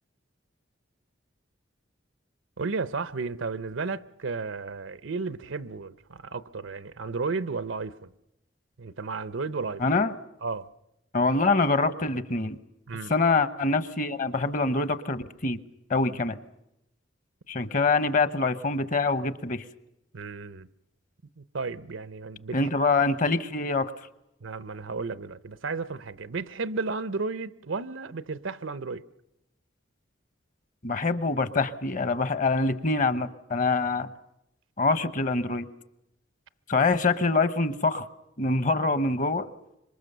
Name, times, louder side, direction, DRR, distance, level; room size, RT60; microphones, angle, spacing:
voice 1, 2.6-8.1 8.8-9.8 10.4-10.7 12.9-13.1 20.1-20.7 21.4-22.7 24.4-29.0, right 4 dB, 90° right, 0.8 m, -33 dB
voice 2, 9.8-10.1 11.1-12.6 13.1-15.6 15.9-16.4 17.5-19.6 22.5-23.9 30.8-34.1 34.8-35.6 36.7-38.0 38.4-39.5, left 3 dB, 45° left, 1.0 m, -25 dB
26.0 x 22.5 x 6.8 m
head